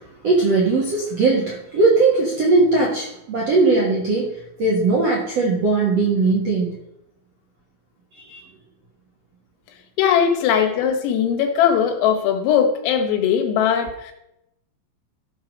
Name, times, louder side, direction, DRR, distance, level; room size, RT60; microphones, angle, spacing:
voice 1, 0.2-4.3 4.6-6.8 8.1-8.4, right 3 dB, 80° right, -2 dB, 1.4 m, -19 dB
voice 2, 10.0-14.1, left 8 dB, 80° left, 4 dB, 4.0 m, -19 dB
14.5 x 6.4 x 5.2 m, 0.83 s
omnidirectional pair, 5.9 m